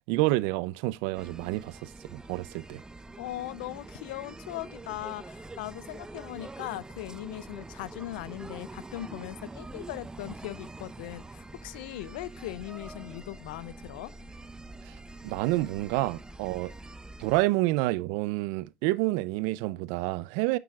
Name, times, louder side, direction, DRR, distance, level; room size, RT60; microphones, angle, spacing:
voice 1, 0.1-2.8 14.9-15.0 15.2-16.7 17.2-20.6, right 19 dB, 75° right, 0.5 m, -28 dB
sound 1, 1.1-17.4, right 2 dB, 15° right, 0.7 m, -45 dB
voice 2, 3.2-14.1, left 16 dB, 85° left, 0.4 m, -39 dB
9.5 x 6.8 x 2.3 m
hypercardioid pair, 70°, 5 cm